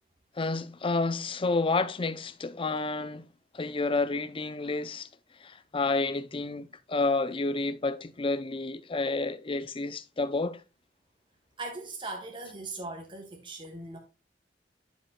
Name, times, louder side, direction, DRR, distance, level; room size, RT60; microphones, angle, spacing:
voice 1, 0.4-3.2 3.5-5.1 5.4-10.6, left 3 dB, 30° left, 0.6 m, -30 dB
voice 2, 11.6-14.0, right 2 dB, 30° right, 1.2 m, -39 dB
13.0 x 5.2 x 2.3 m
head